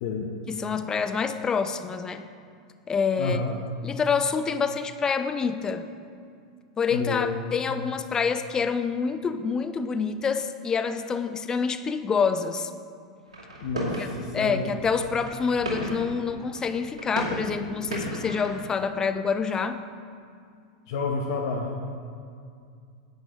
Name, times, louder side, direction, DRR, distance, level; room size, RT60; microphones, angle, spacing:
voice 1, 0.5-2.3 2.9-3.4 3.8-5.9 6.8-12.7 14.0-14.1 14.3-19.8, left 5 dB, 20° left, 10 dB, 0.5 m, -27 dB
voice 2, 3.2-3.5 6.9-7.4 7.7-7.8 13.6-14.7 20.9-22.0, left 4 dB, 55° left, 2 dB, 0.9 m, -30 dB
sound 1, 13.3-18.6, right 1 dB, 70° right, 2.4 m, -35 dB
10.5 x 8.4 x 3.8 m, 2.3 s
figure-of-eight pair, 90°, 3 cm